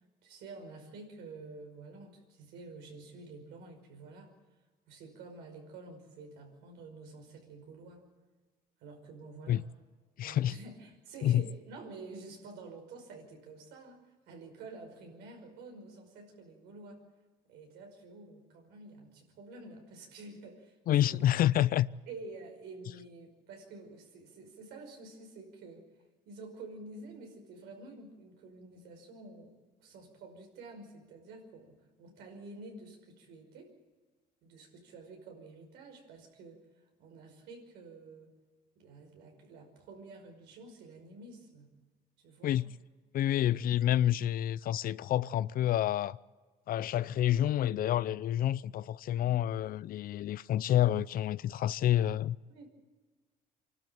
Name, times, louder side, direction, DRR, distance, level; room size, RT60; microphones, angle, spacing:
voice 1, 0.2-4.3 4.9-8.1 8.8-9.7 10.2-14.0 14.3-17.0 17.5-21.3 22.1-25.9 26.3-33.7 34.4-36.6 37.0-38.3 38.8-41.8 42.2-42.6 43.3-43.6 52.5-52.7, right 3 dB, 90° right, 5.4 m, -49 dB
voice 2, 10.2-10.5 11.2-11.4 20.9-21.9 42.4-42.6 43.1-46.2 46.7-52.4, left 12 dB, 60° left, 0.6 m, -28 dB
26.0 x 12.5 x 9.0 m
cardioid pair, 110°, 17 cm